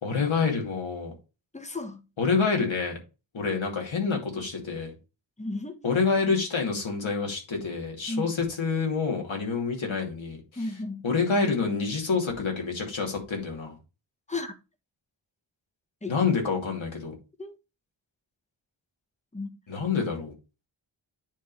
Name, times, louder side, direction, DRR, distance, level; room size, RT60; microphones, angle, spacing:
voice 1, 0.0-1.1 2.2-3.0 3.3-4.9 5.8-10.7 11.0-13.7 16.1-17.1 19.7-20.3, left 5 dB, 75° left, 2.7 m, -27 dB
voice 2, 1.5-2.0 5.4-5.7 8.1-8.4 10.6-11.1 14.3-14.5 16.0-16.2 17.4-17.6 19.3-19.5, left 2 dB, 15° left, 1.2 m, -34 dB
9.4 x 3.7 x 4.1 m
wide cardioid pair, 80°, 47 cm